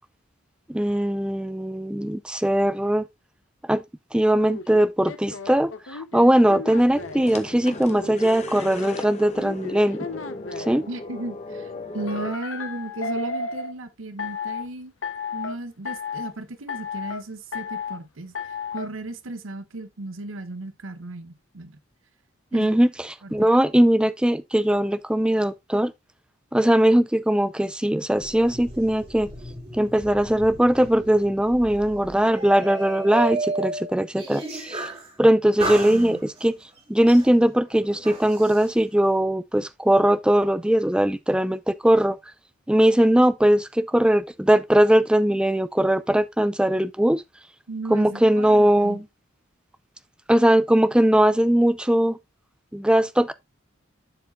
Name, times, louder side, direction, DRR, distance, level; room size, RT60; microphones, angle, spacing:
voice 1, 0.7-3.1 3.7-3.8 4.1-10.1 10.6-10.8 22.5-25.9 26.5-29.3 29.7-34.9 35.2-36.5 36.9-42.2 42.7-47.2 47.9-49.0 50.3-52.2 52.7-53.3, right 1 dB, 5° right, 0.3 m, -20 dB
sound 1, 4.4-7.3 7.9-10.8 12.1-13.7 14.2-14.7 15.0-15.5 15.8-16.3 16.7-17.2 17.5-18.0 18.3-18.9, left 5 dB, 80° left, 0.9 m, -34 dB
sound 2, 6.8-12.3, left 2 dB, 35° left, 0.9 m, -37 dB
voice 2, 10.9-14.9 15.3-18.3 18.7-21.8 22.5-22.7 23.2-23.5 35.8-36.2 47.7-49.0, right 2 dB, 80° right, 0.8 m, -35 dB
sound 3, 28.1-35.1 35.6-36.5 37.1-38.7, right 2 dB, 30° right, 2.1 m, -34 dB
10.5 x 4.8 x 2.6 m
head